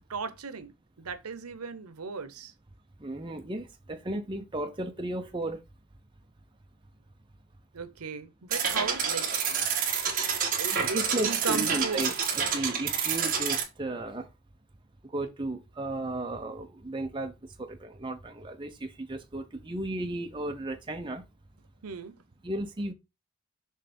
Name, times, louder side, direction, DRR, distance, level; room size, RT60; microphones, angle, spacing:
voice 1, 0.1-0.7 1.0-2.5 7.7-10.2 10.6-12.1 21.8-22.1, right 5 dB, 80° right, 0.9 m, -37 dB
voice 2, 3.0-5.6 10.7-14.3 15.0-21.2 22.4-22.9, right 1 dB, 20° right, 0.7 m, -34 dB
sound 1, 8.5-13.6, right 7 dB, 40° right, 1.7 m, -28 dB
6.6 x 3.3 x 5.2 m
head